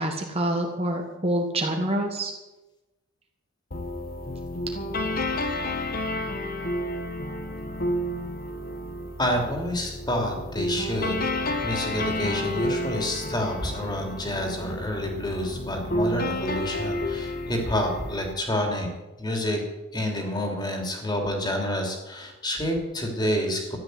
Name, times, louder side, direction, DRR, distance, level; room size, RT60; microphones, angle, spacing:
voice 1, 0.0-2.3, right 1 dB, 25° right, 2 dB, 1.7 m, -26 dB
sound 1, 3.7-18.3, left 1 dB, 40° left, 1.3 m, -30 dB
voice 2, 9.2-11.1 11.6-18.9 19.2-19.6 19.9-23.8, left 1 dB, 20° left, 2 dB, 3.0 m, -28 dB
14.0 x 11.0 x 7.9 m, 1.1 s
head